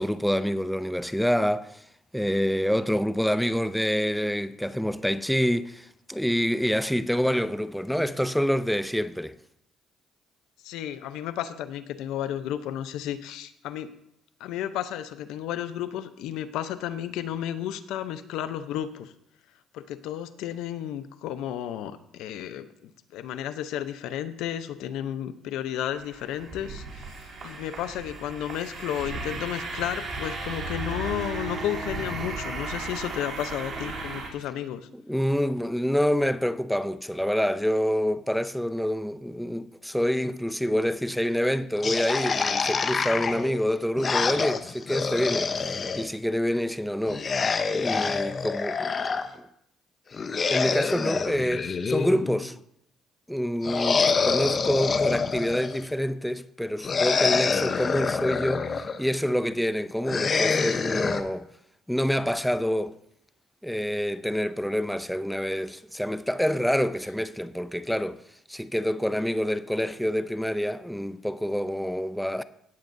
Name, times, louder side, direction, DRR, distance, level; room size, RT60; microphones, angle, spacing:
voice 1, 0.0-1.8 2.1-9.3 35.1-47.3 47.7-49.4 50.5-52.6 53.3-61.5 61.9-62.9 63.6-68.2 68.5-72.4, equal, ahead, 0.5 m, -27 dB
voice 2, 10.6-13.9 14.4-19.1 19.7-27.1 27.4-34.9 54.0-54.3, left 11 dB, 80° left, 0.7 m, -33 dB
sound 1, 25.9-34.3, right 3 dB, 50° right, 3.1 m, -35 dB
sound 2, 41.8-46.1 47.1-49.3 50.1-52.5 53.6-55.9 56.8-59.0 60.0-61.2, left 5 dB, 35° left, 0.8 m, -26 dB
17.0 x 8.4 x 2.7 m
cardioid pair, 90°, 0 cm